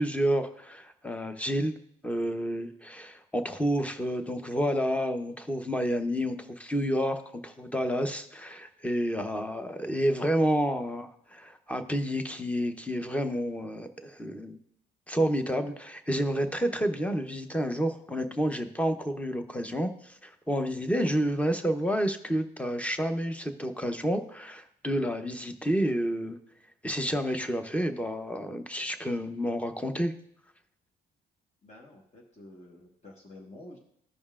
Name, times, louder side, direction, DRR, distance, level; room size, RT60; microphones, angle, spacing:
voice 1, 0.0-1.7 2.0-14.6 15.1-26.4 26.8-30.1, equal, 5° left, 8 dB, 0.8 m, -29 dB
voice 2, 31.6-33.8, left 1 dB, 35° left, -3 dB, 1.3 m, -49 dB
15.0 x 5.3 x 2.4 m, 0.69 s
cardioid pair, 90°, 20 cm